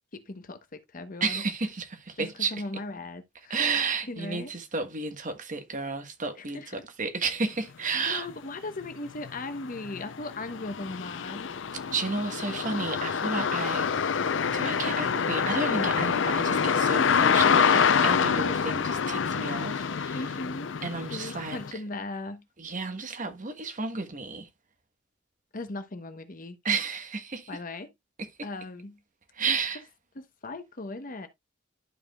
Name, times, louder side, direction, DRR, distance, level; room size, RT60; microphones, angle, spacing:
voice 1, 0.1-1.4 2.2-3.6 4.1-4.5 6.5-6.8 7.9-11.5 20.1-20.7 21.1-22.4 25.5-26.6 27.5-27.9 28.4-29.0 29.5-29.6 30.1-31.3, left 2 dB, 45° left, 1.1 m, -38 dB
voice 2, 1.2-2.6 3.5-8.3 11.9-20.2 20.8-21.8 22.6-24.5 26.6-27.5 29.3-29.8, right 4 dB, 45° right, 1.5 m, -32 dB
sound 1, 8.3-8.4 8.8-21.7, left 6 dB, 75° left, 0.5 m, -26 dB
12.0 x 5.0 x 2.3 m
head